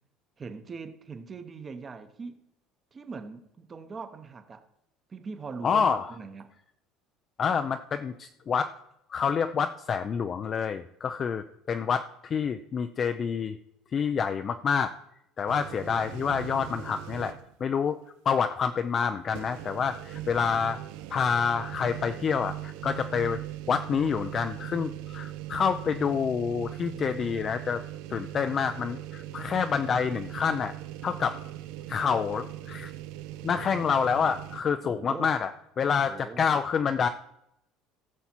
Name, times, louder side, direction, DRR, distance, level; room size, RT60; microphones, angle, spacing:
voice 1, 0.4-2.4 2.9-4.7 5.1-6.5 34.8-35.4 36.0-36.5, right 4 dB, 20° right, 0.9 m, -41 dB
voice 2, 5.6-6.1 7.4-8.7 9.1-13.6 13.9-14.9 15.4-17.3 17.6-18.0 18.3-20.8 21.1-23.4 23.7-27.8 28.1-30.7 31.0-31.4 31.9-32.9 33.4-35.5 35.8-37.1, left 6 dB, 25° left, 0.4 m, -27 dB
sound 1, 15.5-17.6 18.0-18.1 19.3-34.6, right 14 dB, 80° right, 0.6 m, -40 dB
15.5 x 7.1 x 4.5 m
cardioid pair, 165°, 0 cm